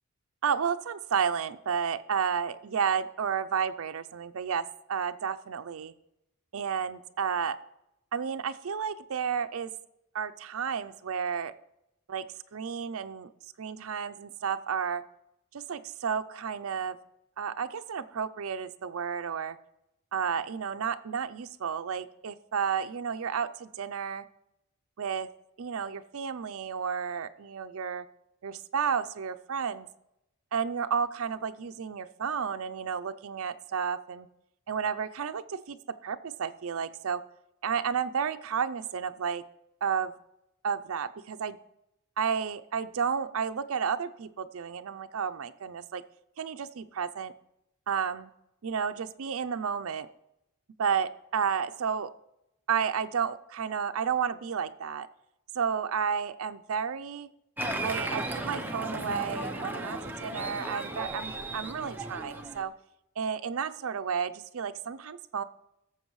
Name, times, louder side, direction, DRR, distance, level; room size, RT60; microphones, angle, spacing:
voice 1, 0.4-5.9 6.5-7.6 8.1-9.7 10.1-11.5 12.1-12.2 12.5-13.3 13.6-15.0 15.5-17.0 17.4-19.6 20.1-24.2 25.0-25.3 25.6-28.1 28.4-29.9 30.5-34.3 34.7-35.8 36.0-37.2 37.6-39.4 39.8-40.1 40.6-41.6 42.2-46.0 46.4-47.3 47.9-48.3 48.6-50.1 50.8-52.1 52.7-55.1 55.5-57.3 57.8-62.7 63.2-65.4, right 7 dB, 80° right, 11 dB, 0.5 m, -32 dB
Applause, 57.6-62.6, right 1 dB, 10° right, 0.7 m, -35 dB
17.0 x 7.2 x 3.1 m, 0.86 s
head